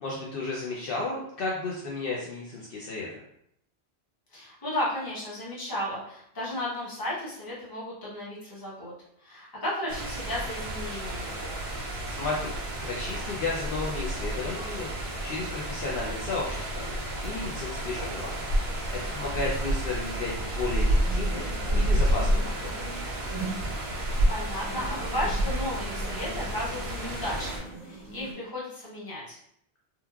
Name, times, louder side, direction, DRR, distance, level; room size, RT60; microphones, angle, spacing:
voice 1, 0.0-3.1 12.1-12.5 12.8-14.9 15.2-16.8 17.2-18.4 18.9-21.5 21.7-22.8, left 3 dB, 65° left, -4 dB, 0.7 m, -33 dB
voice 2, 4.3-8.9 9.2-11.4 18.9-19.2 19.6-19.7 24.0-29.4, left 1 dB, 20° left, -7 dB, 0.8 m, -34 dB
sound 1, 9.9-27.6, right 1 dB, 75° right, 0.9 m, -30 dB
sound 2, 20.8-28.3, right 2 dB, 50° right, 0.6 m, -41 dB
3.1 x 2.2 x 2.3 m, 0.72 s
omnidirectional pair, 1.1 m